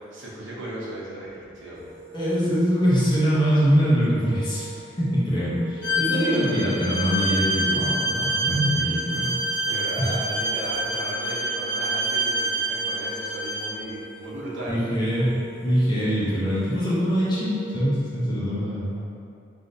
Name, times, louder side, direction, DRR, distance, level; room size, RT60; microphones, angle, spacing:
voice 1, 0.0-1.8 9.5-14.8, right 1 dB, 90° right, -6 dB, 0.7 m, -36 dB
sound 1, 1.7-17.8, right 3 dB, 30° right, 1.5 m, -43 dB
voice 2, 2.1-4.7 5.0-9.4 10.0-10.1 14.7-15.3 15.6-19.0, equal, 25° left, -9 dB, 0.6 m, -23 dB
Bowed string instrument, 5.8-13.7, right 1 dB, 75° left, 1.2 m, -27 dB
3.4 x 2.6 x 2.5 m, 2.5 s
head